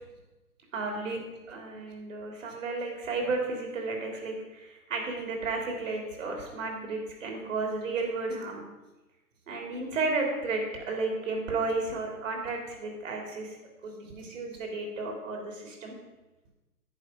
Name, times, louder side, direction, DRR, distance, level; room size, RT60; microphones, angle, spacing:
voice 1, 0.7-1.2 1.5-8.7 9.5-13.5 13.8-15.9, right 3 dB, 55° right, 1 dB, 3.3 m, -33 dB
11.0 x 9.4 x 5.1 m, 1.1 s
figure-of-eight pair, 125°, 46 cm